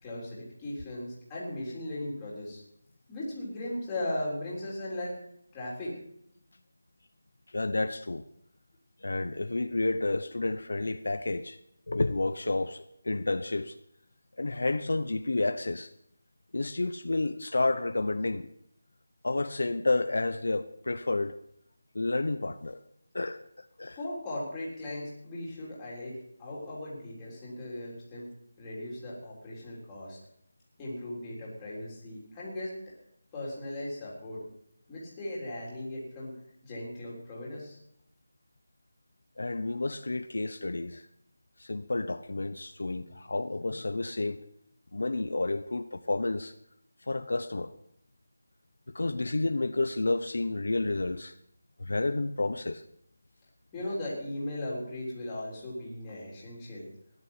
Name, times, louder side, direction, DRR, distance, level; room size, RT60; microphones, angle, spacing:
voice 1, 0.0-2.6 3.1-5.1 5.5-5.9 23.9-28.3 28.6-30.2 30.8-32.7 33.3-34.4 34.9-36.3 36.6-37.8 53.7-56.8, left 1 dB, 10° left, 3.7 m, -37 dB
voice 2, 7.5-8.3 9.0-11.6 11.9-13.8 14.4-15.9 16.5-18.5 19.2-21.4 21.9-22.8 23.1-24.0 39.4-41.1 41.6-44.4 44.9-46.5 47.1-47.7 48.9-51.3 51.8-52.8, left 2 dB, 70° left, 0.8 m, -30 dB
16.5 x 11.0 x 5.7 m
figure-of-eight pair, 175°, 0 cm